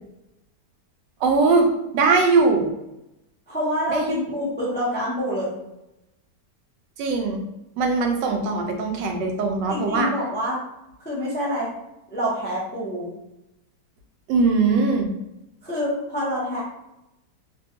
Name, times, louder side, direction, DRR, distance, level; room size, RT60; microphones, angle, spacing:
voice 1, 1.2-2.7 3.9-4.2 7.0-7.4 7.8-10.1 14.3-15.1, right 4 dB, 90° right, 3 dB, 1.2 m, -21 dB
voice 2, 3.5-5.5 9.7-10.6 11.0-11.7 12.1-13.1 15.6-16.6, equal, 15° left, -7 dB, 0.4 m, -26 dB
3.1 x 2.2 x 2.8 m, 0.90 s
omnidirectional pair, 1.8 m